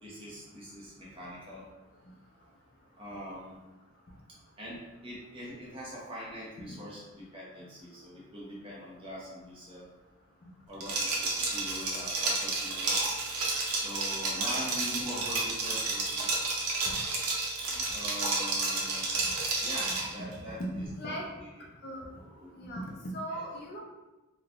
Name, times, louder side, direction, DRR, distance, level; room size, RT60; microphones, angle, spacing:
voice 1, 0.0-1.6 2.9-3.6 4.6-9.9 10.7-13.0 13.7-16.3 17.9-19.2 19.6-20.6 21.1-21.2 22.1-22.5 23.3-23.4, equal, 25° right, -6 dB, 0.7 m, -43 dB
Liquid, 10.8-20.1, right 3 dB, 80° right, 0.6 m, -31 dB
voice 2, 21.0-21.3 21.8-22.0 22.5-23.8, right 1 dB, 45° left, -1 dB, 0.4 m, -39 dB
3.1 x 2.2 x 2.4 m, 1.1 s
head